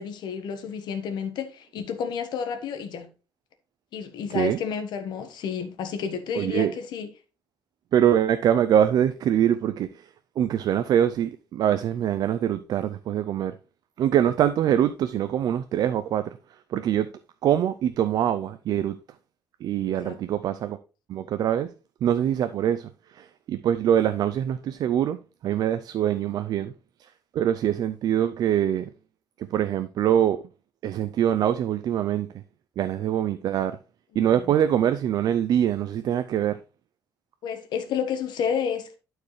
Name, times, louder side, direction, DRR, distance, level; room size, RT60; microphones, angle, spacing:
voice 1, 0.0-3.1 3.9-7.1 20.0-20.2 34.1-34.5 37.4-38.9, left 7 dB, 70° left, 1.4 m, -31 dB
voice 2, 6.4-6.7 7.9-9.9 10.4-13.5 14.0-16.2 16.7-17.1 17.4-18.9 19.6-20.8 21.1-21.7 22.0-22.9 23.1-25.2 25.4-26.7 27.3-28.9 29.4-30.4 30.8-32.3 32.8-33.8 34.2-36.6, right 10 dB, 55° right, 0.4 m, -23 dB
11.5 x 4.7 x 3.2 m
cardioid pair, 160°, 8 cm